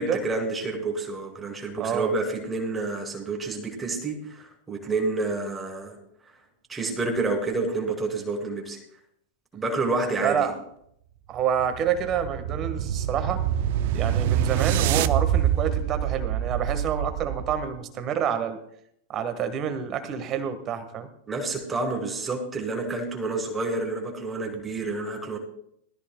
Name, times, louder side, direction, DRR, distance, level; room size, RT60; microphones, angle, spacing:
voice 1, 0.0-6.0 6.7-8.8 9.5-10.5 21.3-25.4, right 3 dB, 15° right, 2 dB, 3.0 m, -29 dB
voice 2, 1.8-2.1 10.2-10.5 11.3-13.4 13.9-18.6 19.1-21.1, right 8 dB, 30° right, 9 dB, 1.5 m, -28 dB
sound 1, 11.4-17.7, right 10 dB, 50° right, 0.5 m, -26 dB
20.0 x 13.5 x 2.2 m, 0.72 s
figure-of-eight pair, 95°, 0 cm